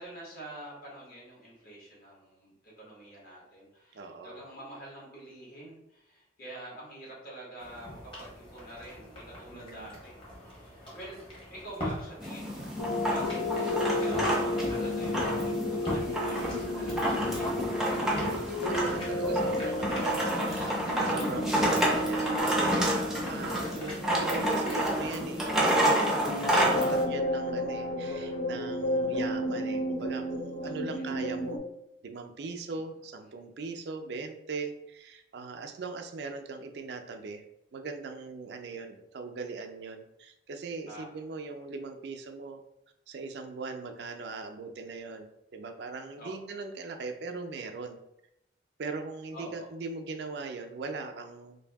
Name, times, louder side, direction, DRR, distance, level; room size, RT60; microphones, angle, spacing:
voice 1, 0.0-11.2 11.5-12.7 13.0-13.4 14.0-17.3 21.1-21.6 23.4-23.9 30.8-31.1 32.7-32.8 40.9-41.1 46.2-46.4 49.3-49.6, right 1 dB, 55° left, -5 dB, 1.3 m, -47 dB
voice 2, 3.9-4.4 9.5-10.0 17.7-23.0 23.3-26.1 26.5-31.6 32.0-37.4 37.7-42.6 43.1-48.0 48.8-51.6, right 4 dB, 65° right, 5 dB, 0.4 m, -40 dB
sound 1, 7.6-26.8, equal, 30° left, 1.0 m, -42 dB
sound 2, 12.2-27.0, right 1 dB, ahead, 0.5 m, -30 dB
sound 3, 12.8-31.6, left 1 dB, 80° left, 0.6 m, -32 dB
2.6 x 2.6 x 3.4 m, 0.83 s
head